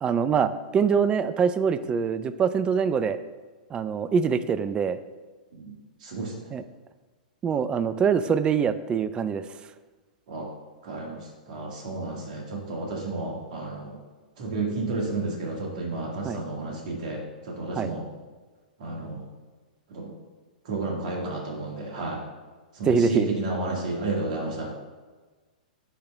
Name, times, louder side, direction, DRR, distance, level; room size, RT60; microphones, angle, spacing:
voice 1, 0.0-3.2 3.7-5.0 6.5-6.6 7.4-9.4 16.2-16.4 17.7-17.9 22.9-23.3, right 6 dB, 20° right, 14 dB, 0.3 m, -24 dB
voice 2, 6.0-6.3 10.3-10.5 10.8-14.0 14.4-18.0 18.8-19.3 19.9-20.1 20.7-22.2 22.7-24.7, right 2 dB, 55° right, -1 dB, 1.8 m, -31 dB
10.0 x 3.4 x 3.5 m, 1.3 s
hypercardioid pair, 110°, 5 cm